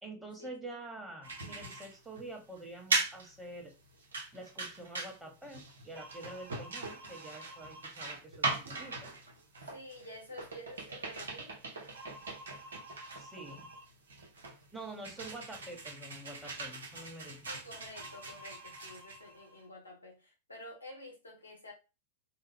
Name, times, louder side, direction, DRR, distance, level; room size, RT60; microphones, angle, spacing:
voice 1, 0.0-3.7 4.3-9.1 13.2-13.7 14.7-17.4, right 2 dB, 10° right, 1.4 m, -47 dB
sound 1, 1.2-19.7, right 3 dB, 70° right, 0.9 m, -40 dB
voice 2, 9.6-11.5 17.4-21.7, left 1 dB, 90° left, 1.3 m, -50 dB
4.8 x 2.1 x 3.4 m
figure-of-eight pair, 90°, 0 cm